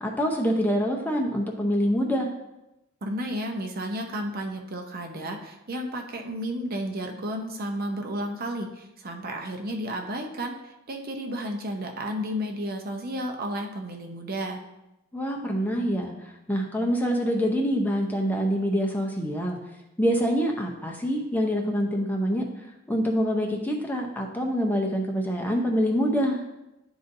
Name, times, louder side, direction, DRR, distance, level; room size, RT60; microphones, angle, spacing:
voice 1, 0.0-2.3 15.1-19.6 20.0-22.4 22.9-26.4, equal, 10° left, 0 dB, 0.6 m, -25 dB
voice 2, 3.0-14.6, equal, 45° right, 3 dB, 0.7 m, -32 dB
10.5 x 4.0 x 2.6 m, 0.93 s
head